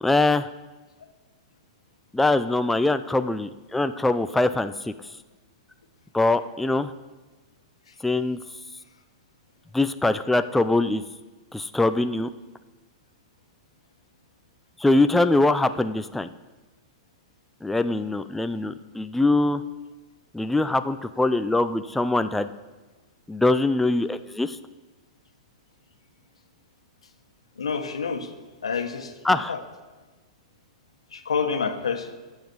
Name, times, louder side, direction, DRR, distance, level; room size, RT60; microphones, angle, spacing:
voice 1, 0.0-0.5 2.1-4.9 6.1-6.9 8.0-8.4 9.7-11.0 11.5-12.3 14.8-16.3 17.6-19.6 20.3-22.5 23.3-24.6 29.2-29.5, left 2 dB, 5° left, 10 dB, 0.4 m, -23 dB
voice 2, 27.6-28.3 28.6-29.1 29.5-29.6 31.1-32.1, left 5 dB, 85° left, 6 dB, 1.4 m, -28 dB
13.5 x 7.4 x 4.7 m, 1.2 s
hypercardioid pair, 110°, 3 cm